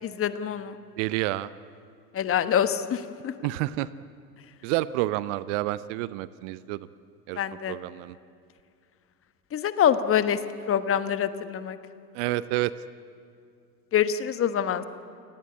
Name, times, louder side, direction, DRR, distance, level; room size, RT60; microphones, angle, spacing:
voice 1, 0.0-0.8 2.1-3.5 7.4-7.8 9.5-10.4 10.7-11.8 13.9-14.8, left 9 dB, 25° left, 12 dB, 1.2 m, -25 dB
voice 2, 1.0-1.5 3.4-3.9 4.6-6.8 7.3-7.4 7.7-8.1 12.1-12.7, right 17 dB, 45° right, 17 dB, 0.7 m, -28 dB
29.0 x 18.0 x 8.5 m, 2.4 s
hypercardioid pair, 90°, 50 cm